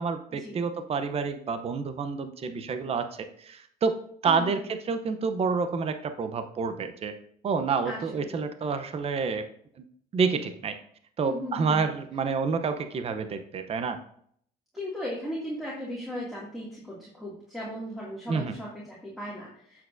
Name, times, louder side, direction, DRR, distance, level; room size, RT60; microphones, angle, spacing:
voice 1, 0.0-7.1 7.4-9.5 9.8-9.9 10.1-10.8 11.2-14.0 18.3-18.5, right 5 dB, 35° right, 9 dB, 0.7 m, -29 dB
voice 2, 4.3-4.6 7.8-8.4 11.2-11.9 14.7-19.8, equal, ahead, -7 dB, 2.3 m, -37 dB
8.4 x 7.2 x 2.6 m, 0.62 s
cardioid pair, 110°, 17 cm